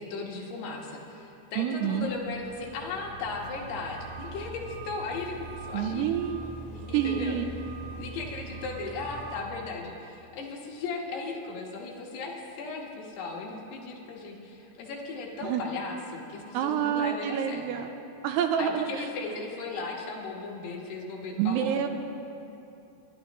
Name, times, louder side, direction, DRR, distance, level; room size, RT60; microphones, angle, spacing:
voice 1, 0.0-6.2 6.7-7.4 8.0-17.7 18.6-21.7, left 3 dB, 70° left, -1 dB, 3.4 m, -37 dB
voice 2, 1.6-2.1 5.7-6.4 6.9-7.5 15.4-15.6 16.5-17.9 18.2-19.1 21.4-21.9, right 9 dB, 80° right, 6 dB, 2.6 m, -27 dB
sound 1, 1.9-9.4, right 3 dB, 55° right, 3.6 m, -42 dB
28.0 x 12.0 x 3.1 m, 3.0 s
omnidirectional pair, 5.0 m